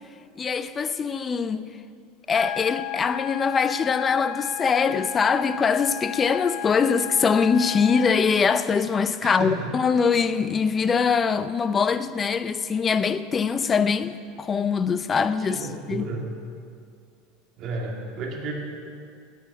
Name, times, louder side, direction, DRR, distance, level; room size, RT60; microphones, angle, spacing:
voice 1, 0.4-1.7 2.3-16.1, left 5 dB, 25° left, 0.6 m, -23 dB
sound 1, 2.3-8.3, left 11 dB, 65° left, 0.8 m, -34 dB
voice 2, 9.2-9.7 15.5-16.3 17.6-18.5, right 2 dB, 50° right, 2.3 m, -32 dB
9.3 x 8.3 x 9.5 m
hypercardioid pair, 100°, 0 cm